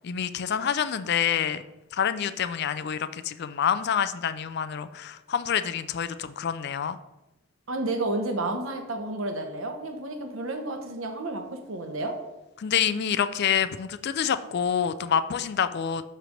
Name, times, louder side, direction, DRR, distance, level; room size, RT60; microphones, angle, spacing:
voice 1, 0.0-1.6 1.9-7.0 12.6-16.0, left 8 dB, 50° left, 13 dB, 0.4 m, -27 dB
voice 2, 7.7-12.2, right 2 dB, 75° right, 5 dB, 1.1 m, -31 dB
7.5 x 3.3 x 6.4 m, 0.98 s
head